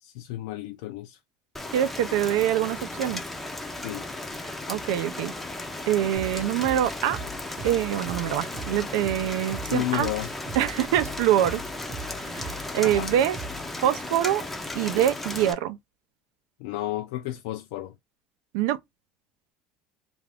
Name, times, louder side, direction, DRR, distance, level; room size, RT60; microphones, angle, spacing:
voice 1, 0.0-1.2 3.8-4.0 9.7-10.3 12.8-13.1 16.6-17.9, left 14 dB, 85° left, 0.4 m, -32 dB
Rain, 1.6-15.5, left 2 dB, 5° left, 0.4 m, -35 dB
voice 2, 1.7-3.2 4.7-5.3 5.9-7.2 7.6-10.1 10.6-11.6 12.2-13.4 13.8-14.4 14.7-15.8 18.5-18.8, right 11 dB, 80° right, 0.4 m, -25 dB
sound 1, 6.1-13.8, right 3 dB, 30° right, 0.8 m, -40 dB
2.4 x 2.4 x 3.3 m
cardioid pair, 155°, 3 cm